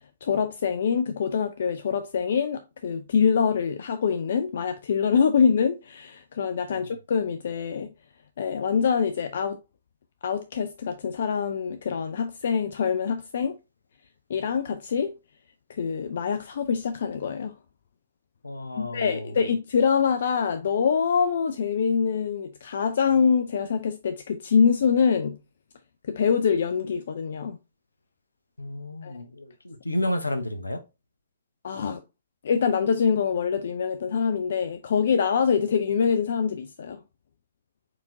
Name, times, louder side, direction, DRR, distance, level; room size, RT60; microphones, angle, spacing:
voice 1, 0.0-7.9 8.4-9.6 10.2-13.6 14.3-15.2 15.8-17.5 18.8-25.4 26.1-27.6 29.0-29.1 31.6-32.0 32.4-37.0, left 6 dB, 55° left, 0.4 m, -25 dB
voice 2, 18.4-19.3 28.6-30.8, left 1 dB, 75° left, 0.7 m, -31 dB
4.6 x 3.6 x 2.6 m
figure-of-eight pair, 120°, 0 cm